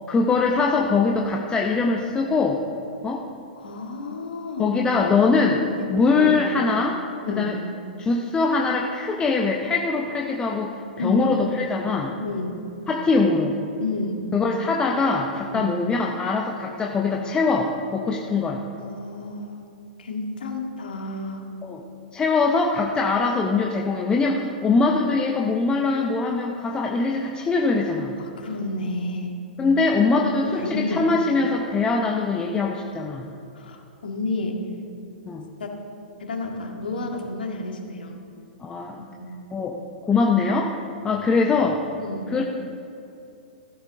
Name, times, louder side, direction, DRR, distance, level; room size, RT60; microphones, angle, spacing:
voice 1, 0.1-2.6 3.0-3.2 4.6-5.6 5.9-7.0 7.3-7.6 8.0-12.1 12.9-13.5 14.3-18.6 21.6-21.8 22.1-28.1 29.6-33.3 35.3-35.5 38.6-39.0 39.5-40.7 41.0-41.8 42.3-42.4, left 4 dB, 15° left, 1 dB, 0.8 m, -22 dB
voice 2, 3.6-5.5 5.8-6.4 7.3-7.6 11.0-11.4 12.2-12.6 13.8-14.3 15.5-15.8 18.8-19.5 20.0-21.5 28.2-29.3 30.3-31.2 33.5-34.6 35.6-35.8 36.2-38.2 39.0-39.5 41.2-41.3 42.0-42.3, left 2 dB, 70° left, 2 dB, 1.9 m, -31 dB
15.0 x 12.5 x 3.6 m, 2.6 s
figure-of-eight pair, 110°, 5 cm